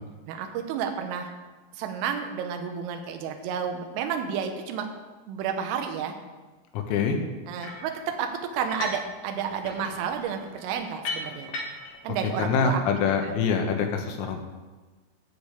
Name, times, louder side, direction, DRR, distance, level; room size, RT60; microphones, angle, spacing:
voice 1, 0.3-1.3 1.7-4.9 5.3-6.1 7.5-11.5 12.0-12.8 13.2-13.3, right 7 dB, 80° right, 4 dB, 3.5 m, -31 dB
voice 2, 6.7-7.2 12.4-14.4, left 5 dB, 85° left, 4 dB, 3.8 m, -25 dB
sound 1, 7.6-7.9 8.6-9.1 9.4-12.0, left 3 dB, 60° left, 2.7 m, -36 dB
11.5 x 5.2 x 8.3 m, 1.3 s
omnidirectional pair, 5.9 m